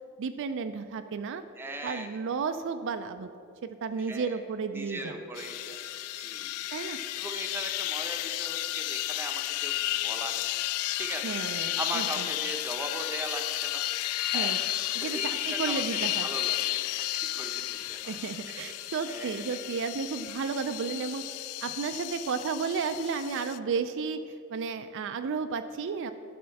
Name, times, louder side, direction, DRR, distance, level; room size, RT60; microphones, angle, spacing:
voice 1, 0.2-1.4 1.8-3.3 3.6-5.2 6.7-7.0 11.2-12.3 14.3-14.6 14.9-16.3 18.1-21.2 21.6-26.1, right 5 dB, 60° right, 8 dB, 0.4 m, -33 dB
voice 2, 1.6-2.1 4.0-4.4 4.7-10.4 10.9-13.8 14.3-18.2 18.5-18.7 19.1-19.6, right 1 dB, 10° right, 3 dB, 0.8 m, -40 dB
sound 1, 5.4-23.6, left 15 dB, 90° left, 0.3 m, -33 dB
12.0 x 4.3 x 7.0 m, 2.6 s
head